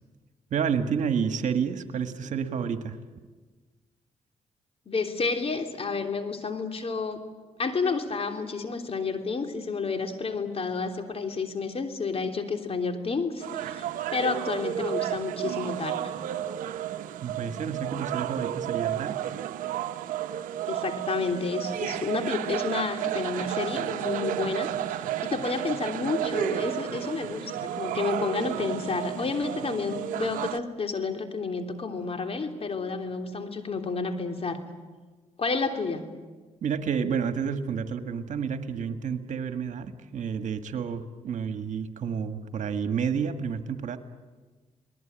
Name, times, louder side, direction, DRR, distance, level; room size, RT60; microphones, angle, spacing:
voice 1, 0.5-3.0 17.2-19.2 36.6-44.0, right 6 dB, 70° right, 8 dB, 1.8 m, -30 dB
voice 2, 4.9-7.2 7.6-16.0 20.7-34.6 35.4-36.1, left 4 dB, 50° left, 5 dB, 3.3 m, -30 dB
sound 1, 13.4-30.6, right 12 dB, 90° right, 0.8 m, -32 dB
29.5 x 20.0 x 9.0 m, 1.3 s
cardioid pair, 65°, 13 cm